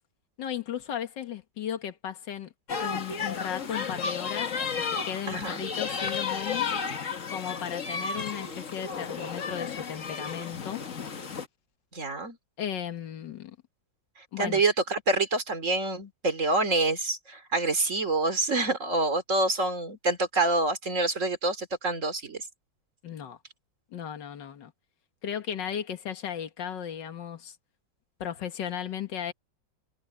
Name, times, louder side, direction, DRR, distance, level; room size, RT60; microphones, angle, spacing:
voice 1, 0.4-2.5 2.8-4.5 5.1-6.7 7.3-10.8 12.6-13.6 14.3-14.6 23.0-23.4 23.9-24.7 25.2-27.6 28.2-29.3, left 9 dB, 70° left, 2.1 m, -35 dB
sound 1, 2.7-11.5, left 6 dB, 45° left, 1.7 m, -33 dB
voice 2, 5.3-5.7 11.9-12.4 14.2-22.5, right 2 dB, 40° right, 3.0 m, -27 dB
omnidirectional pair, 2.1 m